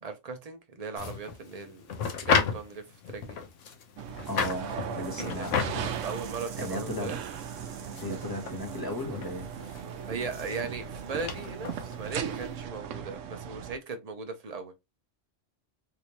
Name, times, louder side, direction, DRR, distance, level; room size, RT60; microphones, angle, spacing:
voice 1, 0.0-3.4 5.2-5.5 6.0-7.2 10.1-14.7, right 4 dB, 35° right, 0.8 m, -38 dB
sound 1, 1.0-12.5, left 6 dB, 85° left, 1.1 m, -34 dB
sound 2, 4.0-10.7 10.9-11.3, right 5 dB, 60° right, 1.1 m, -52 dB
sound 3, 4.0-13.8, right 8 dB, 85° right, 0.9 m, -38 dB
voice 2, 4.3-6.0 6.6-7.1 8.0-9.5, left 1 dB, 20° left, 1.1 m, -35 dB
3.4 x 2.9 x 2.9 m
omnidirectional pair, 1.3 m